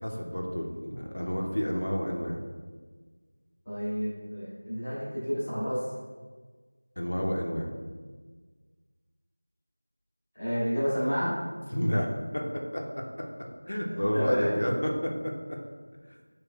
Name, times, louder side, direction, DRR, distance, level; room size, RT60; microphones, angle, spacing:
voice 1, 0.0-2.4 7.0-7.7 11.7-12.4 12.7-13.0 13.7-15.3, equal, 60° left, 0 dB, 0.7 m, -30 dB
voice 2, 3.6-5.8 10.3-11.3 14.1-14.6, equal, 5° left, -23 dB, 1.3 m, -29 dB
5.5 x 3.1 x 2.3 m, 1.5 s
figure-of-eight pair, 175°, 0 cm